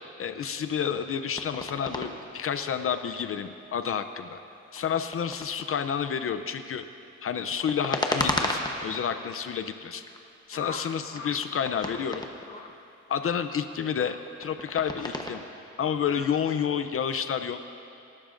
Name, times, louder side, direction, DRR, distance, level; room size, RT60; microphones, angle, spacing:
voice 1, 0.2-4.4 4.7-6.8 7.2-10.0 10.5-12.2 13.1-15.4 15.8-17.6, left 7 dB, 50° left, 9 dB, 0.5 m, -30 dB
sound 1, 1.1-2.1 2.7-3.9 4.7-5.8 7.3-9.1 9.6-10.3 10.5-12.7 13.4-15.4, left 2 dB, 15° left, 0.9 m, -34 dB
sound 2, 10.5-11.4 11.7-12.0 12.4-12.7 13.1-13.3 13.9-14.2 14.9-15.1 16.0-16.3, left 4 dB, 30° left, 1.1 m, -42 dB
26.5 x 12.0 x 2.6 m, 2.7 s
cardioid pair, 130°, 30 cm